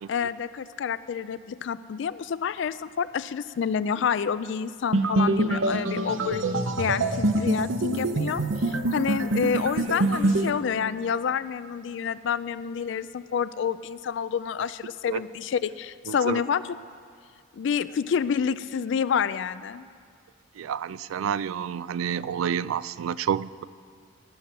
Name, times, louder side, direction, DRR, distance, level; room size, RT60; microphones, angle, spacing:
voice 1, 0.1-6.4 6.8-16.6 17.5-19.9, left 7 dB, 60° left, 15 dB, 0.3 m, -28 dB
sound 1, 4.9-10.5, right 2 dB, 70° right, 0.8 m, -25 dB
voice 2, 16.1-16.4 20.5-23.6, right 8 dB, 90° right, 17 dB, 0.3 m, -29 dB
18.5 x 7.6 x 5.7 m, 2.2 s
head